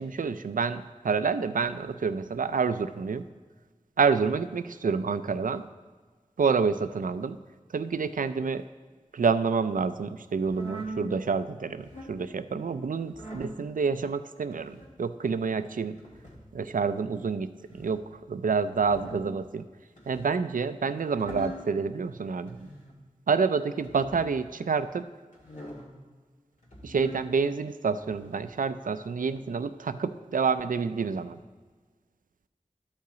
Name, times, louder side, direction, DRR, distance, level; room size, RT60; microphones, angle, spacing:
voice 1, 0.0-3.3 4.0-5.6 6.4-7.4 7.7-8.6 9.1-15.9 16.5-19.7 20.1-22.7 23.3-25.1 26.8-31.4, right 5 dB, 75° right, 12 dB, 0.4 m, -28 dB
sound 1, 10.4-11.0 11.7-12.2 13.1-13.5 14.5-14.9 16.0-16.5 17.6-18.0 18.7-19.3 20.0-20.4 21.0-21.7 22.5-23.0 23.8-24.4 25.3-25.9 26.6-27.3 28.0-28.5 29.3-29.4, equal, 70° left, 2.0 m, -42 dB
12.5 x 5.6 x 3.9 m, 1.4 s
wide cardioid pair, 45°, 14 cm